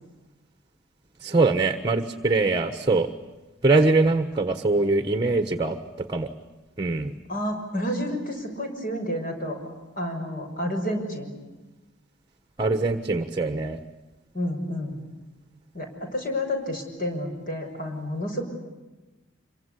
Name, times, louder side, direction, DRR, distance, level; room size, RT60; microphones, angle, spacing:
voice 1, 1.2-3.1 3.6-5.8 6.1-6.3 6.8-7.1 12.6-13.8, right 3 dB, 20° right, 7 dB, 1.3 m, -22 dB
voice 2, 7.3-9.6 10.0-11.3 14.3-15.0 15.7-18.4, left 1 dB, 45° left, 4 dB, 6.4 m, -30 dB
26.5 x 24.0 x 8.4 m, 1.1 s
head